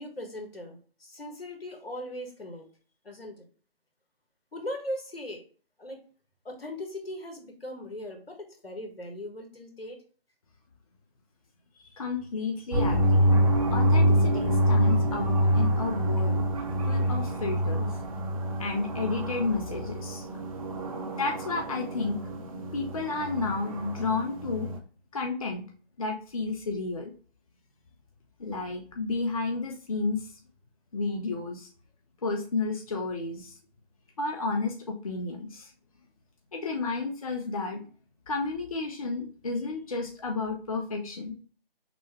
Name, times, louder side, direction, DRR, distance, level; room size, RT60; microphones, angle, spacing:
voice 1, 0.0-2.6 3.0-3.4 4.5-5.4 5.8-6.0 6.4-10.0, left 1 dB, 75° left, 4 dB, 1.5 m, -39 dB
voice 2, 11.8-13.3 13.7-16.4 16.9-18.0 18.6-20.3 21.2-22.2 22.7-24.7 25.1-25.7 26.0-27.1 28.4-30.3 30.9-31.7 32.2-33.6 34.2-35.7 36.5-37.9 38.3-41.3, left 3 dB, 35° left, 3 dB, 0.6 m, -31 dB
sound 1, 12.7-24.8, equal, 35° right, 0.7 m, -26 dB
6.0 x 2.2 x 3.1 m, 0.40 s
figure-of-eight pair, 145°, 30 cm